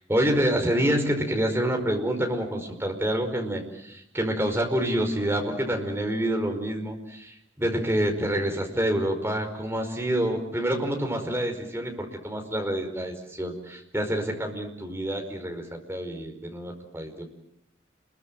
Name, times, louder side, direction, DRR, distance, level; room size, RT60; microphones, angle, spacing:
voice 1, 0.1-17.2, right 1 dB, 15° right, 3 dB, 5.1 m, -27 dB
30.0 x 22.5 x 7.9 m, 0.77 s
head